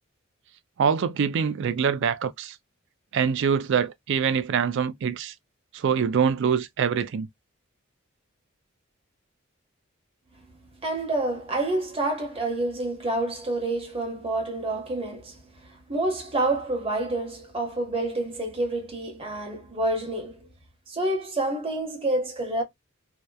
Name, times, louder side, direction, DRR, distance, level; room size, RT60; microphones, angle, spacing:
voice 1, 0.8-2.6 3.1-5.3 5.7-7.3, right 6 dB, 60° right, 0.4 m, -24 dB
voice 2, 10.8-20.5 20.9-22.6, right 2 dB, 30° right, 1.0 m, -28 dB
2.8 x 2.1 x 2.2 m
head